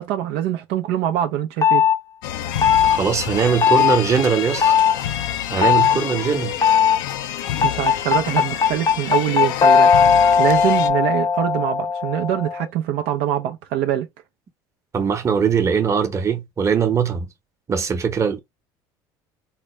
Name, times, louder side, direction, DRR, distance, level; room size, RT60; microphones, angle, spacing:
voice 1, 0.0-1.8 7.6-9.9 10.4-14.1, right 11 dB, 70° right, 0.5 m, -23 dB
sound 1, 1.6-2.0 2.6-3.0 3.6-4.0 4.6-4.9 5.6-6.0 6.6-7.0 7.6-12.7, left 7 dB, 35° left, 0.6 m, -17 dB
sound 2, 2.2-10.9, left 11 dB, 85° left, 0.5 m, -28 dB
voice 2, 2.8-4.8 5.5-6.6 14.9-17.3 17.7-18.4, right 6 dB, 30° right, 0.9 m, -21 dB
3.8 x 2.1 x 3.2 m
supercardioid pair, 95°, 10 cm